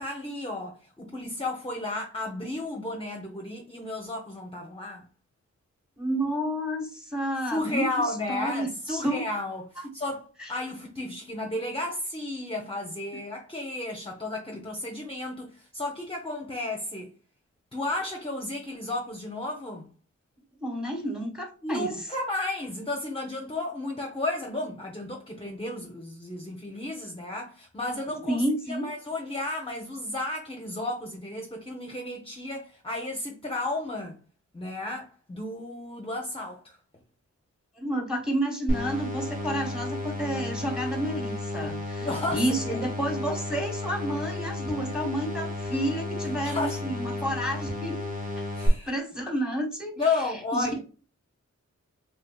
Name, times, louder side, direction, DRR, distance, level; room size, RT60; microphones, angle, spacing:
voice 1, 0.0-5.0 7.5-17.1 17.7-19.9 21.6-28.4 28.7-34.2 34.5-36.8 42.0-42.8 46.4-46.9 48.5-48.9 50.0-50.8, left 2 dB, 20° left, 0.6 m, -33 dB
voice 2, 6.0-9.3 10.4-10.5 20.6-21.9 28.2-28.9 37.8-48.0 48.4-48.5 48.9-49.9 50.5-50.8, right 1 dB, ahead, 1.2 m, -30 dB
sound 1, 38.7-48.7, left 2 dB, 30° right, 1.0 m, -33 dB
3.3 x 3.1 x 2.2 m
wide cardioid pair, 75°, 30 cm